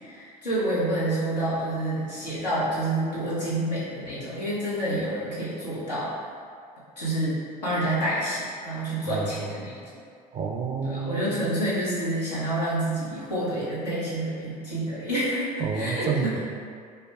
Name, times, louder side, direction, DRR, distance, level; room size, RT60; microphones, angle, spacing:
voice 1, 0.0-6.1 7.0-9.7 10.8-16.4, right 1 dB, 85° left, -10 dB, 1.1 m, -28 dB
voice 2, 9.1-9.5 10.3-11.4 15.6-16.4, right 5 dB, 30° right, 1 dB, 0.4 m, -29 dB
4.8 x 2.2 x 2.3 m, 2.2 s
figure-of-eight pair, 65°, 21 cm